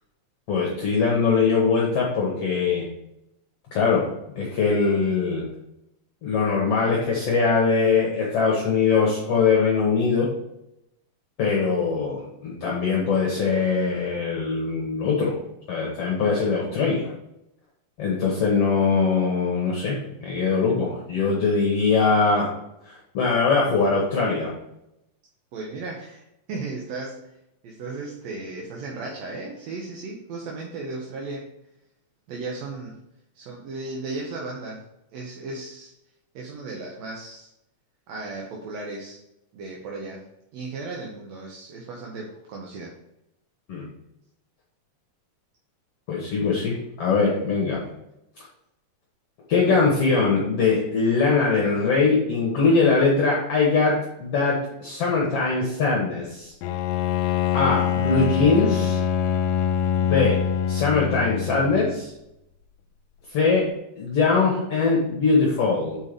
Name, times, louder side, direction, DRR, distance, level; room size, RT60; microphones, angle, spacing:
voice 1, 0.5-2.9 3.7-4.1 4.4-5.5 6.2-10.3 11.4-15.4 15.7-17.1 18.0-22.5 22.9-24.6 43.7-43.9 46.1-47.9 49.5-56.5 57.5-59.0 60.0-60.4 60.7-62.1 63.3-63.6 64.0-66.0, left 4 dB, 60° left, -3 dB, 1.9 m, -22 dB
voice 2, 25.5-26.2 26.5-27.4 27.6-31.5 32.3-33.0 33.4-34.8 35.1-35.9 36.4-37.5 38.1-39.2 39.5-40.3 40.5-42.9, right 3 dB, 65° right, -1 dB, 1.9 m, -35 dB
Bowed string instrument, 56.6-62.0, left 9 dB, 85° left, 1.6 m, -24 dB
6.6 x 4.6 x 5.1 m, 0.86 s
omnidirectional pair, 3.7 m